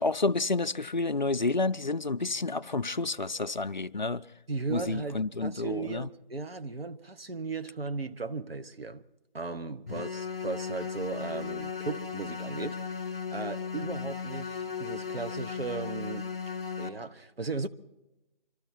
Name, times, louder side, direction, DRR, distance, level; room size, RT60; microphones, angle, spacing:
voice 1, 0.0-4.2 4.7-6.1, left 3 dB, 50° left, 0.5 m, -29 dB
voice 2, 4.5-9.0 9.3-16.3 16.8-17.7, right 4 dB, 80° right, 1.1 m, -36 dB
sound 1, 9.9-16.9, left 6 dB, 15° right, 1.2 m, -36 dB
25.0 x 13.0 x 4.4 m
figure-of-eight pair, 170°, 29 cm